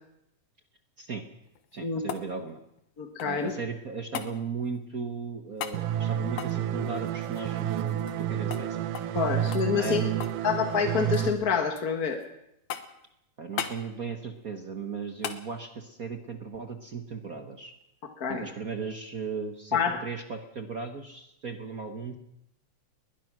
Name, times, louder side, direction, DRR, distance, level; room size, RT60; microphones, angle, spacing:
sound 1, 1.5-3.5 4.1-4.3 5.6-5.8 6.3-8.3 8.5-8.7 8.9-9.2 9.5-10.4 10.7-11.3 11.8-12.3 12.7-13.1 13.6-13.8 15.2-15.4 17.8-17.9, left 9 dB, 70° left, 2.6 m, -38 dB
voice 1, 1.7-2.6 3.2-8.8 9.7-10.2 13.4-17.7 18.3-22.2, right 5 dB, 50° right, 6 dB, 1.0 m, -36 dB
voice 2, 3.0-3.5 9.1-10.0 10.4-12.2 18.2-18.4 19.7-20.0, left 6 dB, 40° left, 5 dB, 1.4 m, -27 dB
sound 2, 5.7-11.3, right 10 dB, 85° right, 2.5 m, -30 dB
21.0 x 20.0 x 6.2 m, 0.82 s
omnidirectional pair, 3.6 m